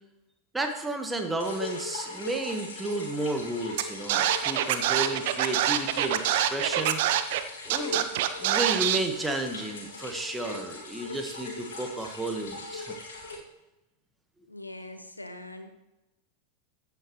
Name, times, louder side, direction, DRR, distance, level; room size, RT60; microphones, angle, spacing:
voice 1, 0.5-7.0 7.7-8.1 8.4-12.9, right 2 dB, 10° right, 4 dB, 1.4 m, -32 dB
sound 1, 1.4-13.4, left 3 dB, 60° left, 2.2 m, -40 dB
Scratching (performance technique), 3.8-3.9 4.1-7.4 7.7-9.0, right 12 dB, 50° right, 0.6 m, -25 dB
voice 2, 14.5-15.7, left 1 dB, 85° left, 8 dB, 1.1 m, -42 dB
15.0 x 8.2 x 3.1 m, 0.98 s
figure-of-eight pair, 90°, 0 cm